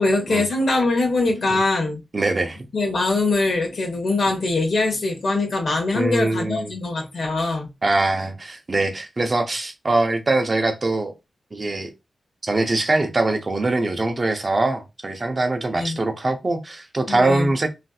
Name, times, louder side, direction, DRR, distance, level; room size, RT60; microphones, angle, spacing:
voice 1, 0.0-2.0 2.7-7.7 15.7-16.0 17.1-17.5, left 2 dB, 70° left, 1.4 m, -22 dB
voice 2, 2.1-2.6 5.9-6.7 7.8-11.1 11.5-11.9 12.4-17.7, right 2 dB, 40° right, 0.7 m, -22 dB
3.3 x 2.6 x 2.4 m
cardioid pair, 65°, 0 cm